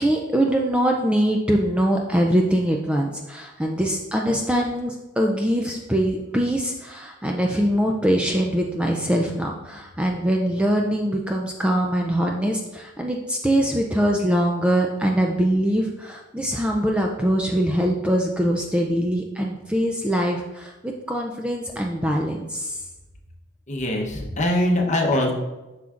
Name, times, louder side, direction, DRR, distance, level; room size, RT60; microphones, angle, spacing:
voice 1, 0.0-22.8, equal, 5° right, 0 dB, 0.4 m, -23 dB
voice 2, 23.7-25.3, left 1 dB, 35° left, 1 dB, 0.9 m, -22 dB
7.7 x 5.8 x 2.5 m, 1.1 s
head